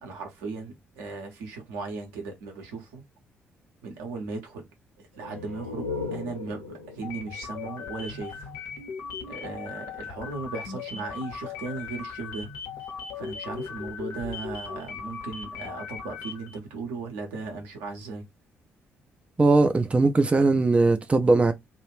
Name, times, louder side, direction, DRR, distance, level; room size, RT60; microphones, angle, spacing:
voice 1, 0.0-3.0 3.8-4.7 5.0-8.5 9.3-12.5 13.1-18.3, right 4 dB, 65° right, 0.7 m, -37 dB
sound 1, 5.1-8.7, left 4 dB, 90° right, 0.4 m, -38 dB
sound 2, 7.0-16.6, left 6 dB, 60° left, 0.6 m, -38 dB
voice 2, 19.4-21.5, right 3 dB, 20° right, 0.4 m, -20 dB
2.3 x 2.0 x 3.1 m
figure-of-eight pair, 40°, 6 cm